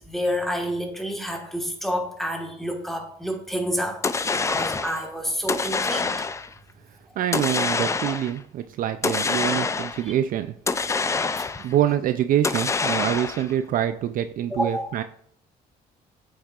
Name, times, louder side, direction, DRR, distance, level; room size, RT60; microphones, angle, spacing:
voice 1, 0.0-4.0 4.3-6.1 14.5-14.9, equal, ahead, 2 dB, 1.4 m, -28 dB
sound 1, 4.0-5.0 5.5-6.5 7.3-8.4 9.0-10.1 10.7-11.8 12.4-13.5, left 4 dB, 15° left, 0.4 m, -26 dB
voice 2, 7.2-10.5 11.6-15.0, right 11 dB, 55° right, 10 dB, 0.4 m, -25 dB
8.1 x 6.3 x 2.4 m, 0.64 s
cardioid pair, 110°, 17 cm